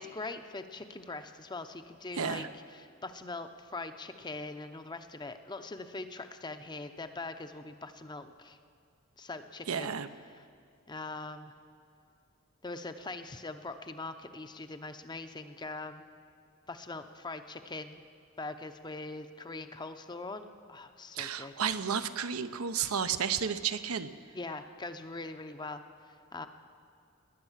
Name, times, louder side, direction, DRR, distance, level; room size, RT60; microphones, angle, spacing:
voice 1, 0.0-8.6 9.2-9.9 10.3-10.4 10.9-11.5 12.6-16.0 16.7-18.0 18.4-21.5 24.3-26.5, left 3 dB, 20° left, 9 dB, 0.7 m, -42 dB
voice 2, 2.2-2.5 9.7-10.1 21.1-24.1, right 7 dB, 85° right, 10 dB, 0.7 m, -32 dB
20.0 x 9.2 x 7.3 m, 2.5 s
head